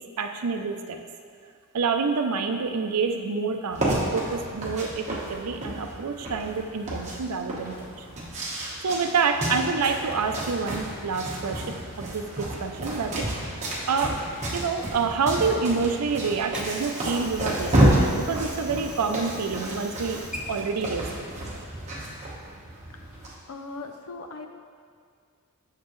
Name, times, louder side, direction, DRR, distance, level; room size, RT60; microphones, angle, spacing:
voice 1, 0.2-1.0 1.7-7.9 8.8-11.7 12.0-13.3 13.9-14.2 14.5-20.2 20.5-21.1, right 5 dB, 90° right, 5 dB, 0.5 m, -27 dB
sound 1, 3.7-23.3, right 1 dB, 30° right, 1.2 m, -30 dB
Water / Sink (filling or washing), 16.3-22.1, right 1 dB, 5° right, 0.5 m, -43 dB
voice 2, 22.9-24.5, left 3 dB, 70° left, 5 dB, 0.6 m, -40 dB
7.3 x 6.4 x 3.1 m, 2.2 s
head